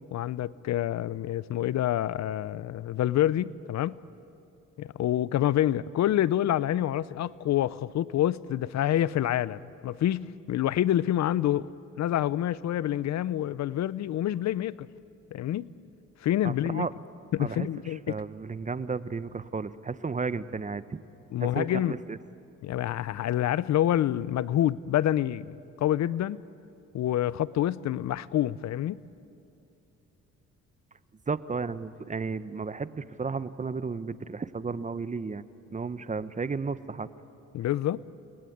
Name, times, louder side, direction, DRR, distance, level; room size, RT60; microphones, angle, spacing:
voice 1, 0.1-4.0 4.8-11.7 12.0-14.9 15.3-15.7 16.2-16.9 17.3-18.2 21.3-21.9 22.6-26.4 26.9-29.0 37.5-38.0, left 12 dB, 65° left, 0.7 m, -27 dB
voice 2, 16.4-16.9 17.4-17.7 18.1-21.0 21.4-22.2 31.3-35.4 35.7-37.1, right 4 dB, 25° right, 0.9 m, -33 dB
30.0 x 21.0 x 9.4 m
cardioid pair, 90°, 30 cm